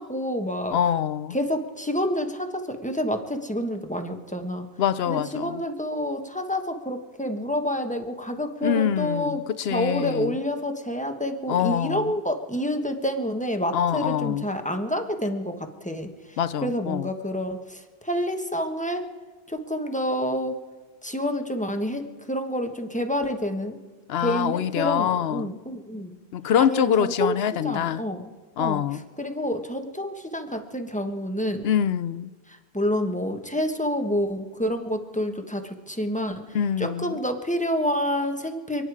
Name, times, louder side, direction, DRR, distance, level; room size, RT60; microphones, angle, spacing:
voice 1, 0.0-0.8 1.3-4.7 5.1-9.4 9.7-16.1 16.6-19.0 19.5-20.5 21.0-23.8 24.2-26.1 26.6-27.3 27.6-28.3 28.6-28.8 29.2-31.7 32.7-36.4 36.8-38.9, equal, 5° left, 1.3 m, -28 dB
voice 2, 0.7-1.4 4.8-5.6 8.6-10.4 11.5-12.1 13.7-14.5 16.4-17.1 24.1-25.5 26.3-28.0 28.6-29.0 31.6-32.3 36.5-37.2, left 9 dB, 75° left, 0.9 m, -25 dB
29.0 x 10.0 x 4.8 m
omnidirectional pair, 1.0 m